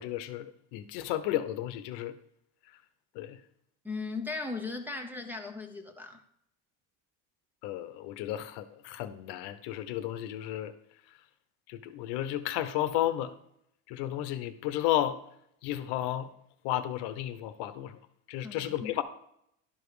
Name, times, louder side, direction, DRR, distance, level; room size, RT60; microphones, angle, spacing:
voice 1, 0.0-2.1 3.1-3.4 7.6-10.7 11.7-13.3 13.9-15.2 15.6-16.3 16.6-18.0 18.3-19.0, left 13 dB, 65° left, 11 dB, 0.9 m, -33 dB
voice 2, 3.8-6.2 18.4-18.9, left 3 dB, 5° right, 6 dB, 0.8 m, -37 dB
11.5 x 5.2 x 4.9 m, 0.72 s
cardioid pair, 140°, 42 cm